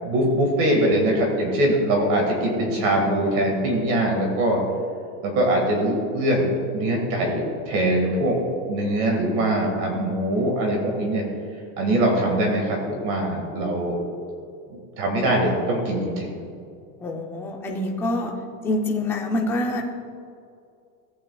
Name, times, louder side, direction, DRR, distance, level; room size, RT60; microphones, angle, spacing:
voice 1, 0.0-4.6 5.2-8.4 8.7-11.2 11.8-14.0 14.7-16.3, right 1 dB, 45° right, 1 dB, 2.0 m, -22 dB
voice 2, 17.0-18.3 18.6-19.8, left 1 dB, 5° left, -1 dB, 0.5 m, -26 dB
16.5 x 8.6 x 2.3 m, 2.4 s
supercardioid pair, 170°, 40 cm